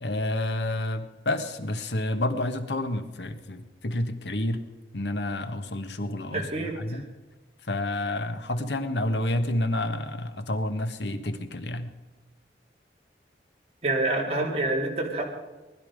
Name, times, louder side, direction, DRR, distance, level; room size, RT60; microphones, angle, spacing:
voice 1, 0.0-4.6 4.9-7.1 7.6-11.9, left 1 dB, 80° left, 8 dB, 1.4 m, -29 dB
voice 2, 6.3-7.0 13.8-15.2, right 2 dB, 35° right, -2 dB, 3.7 m, -27 dB
20.0 x 12.0 x 5.2 m, 1.2 s
head